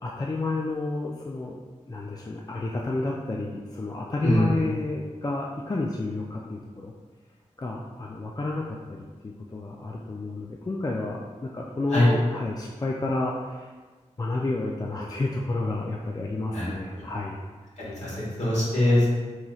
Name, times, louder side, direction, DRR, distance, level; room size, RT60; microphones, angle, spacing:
voice 1, 0.0-1.6 1.9-6.9 7.6-9.0 9.2-13.7 14.2-17.4, left 2 dB, 30° left, -2 dB, 0.3 m, -30 dB
voice 2, 4.2-4.6 11.9-12.1 16.5-16.7 17.8-19.1, left 1 dB, 60° left, -7 dB, 1.4 m, -22 dB
4.0 x 3.0 x 2.3 m, 1.4 s
cardioid pair, 50°, 13 cm